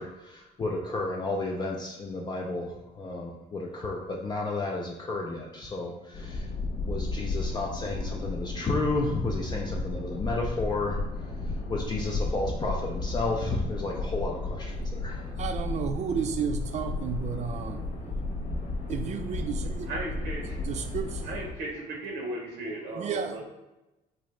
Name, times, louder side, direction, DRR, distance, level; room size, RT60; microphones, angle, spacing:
voice 1, 0.0-6.5 6.8-11.0 11.7-15.3, left 2 dB, 25° left, -1 dB, 0.4 m, -32 dB
sound 1, 6.1-21.5, left 2 dB, 75° left, 1.1 m, -33 dB
voice 2, 15.4-17.8 18.9-19.9 20.7-21.3 23.0-23.4, right 7 dB, 40° right, 8 dB, 0.4 m, -32 dB
voice 3, 19.9-20.6 21.2-23.4, right 2 dB, 85° right, -1 dB, 0.7 m, -36 dB
3.7 x 2.6 x 3.2 m, 0.99 s
cardioid pair, 110°, 17 cm